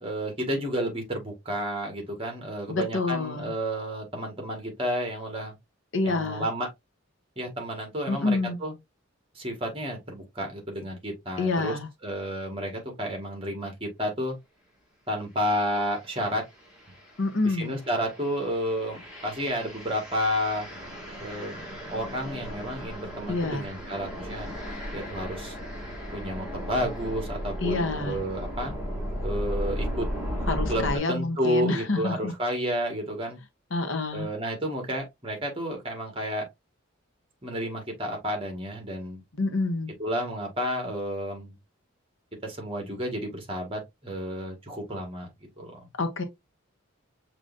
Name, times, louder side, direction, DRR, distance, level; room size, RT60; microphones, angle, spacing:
voice 1, 0.0-5.5 6.0-6.7 7.4-8.7 9.3-14.3 15.1-16.5 17.4-20.7 21.2-24.5 24.9-25.6 26.1-28.7 29.2-30.1 30.7-33.4 34.1-36.5 37.4-39.2 40.0-41.5 42.4-45.3 45.6-45.8, equal, 25° right, 1.6 m, -31 dB
voice 2, 2.7-3.5 5.9-6.5 8.1-8.6 11.4-11.9 17.2-17.8 23.3-23.7 27.6-28.2 30.5-32.3 33.7-34.3 39.4-39.9 46.0-46.2, left 3 dB, 65° left, 0.9 m, -27 dB
sound 1, 15.7-16.0 16.5-31.0, equal, 5° right, 2.1 m, -35 dB
6.3 x 3.0 x 2.5 m
head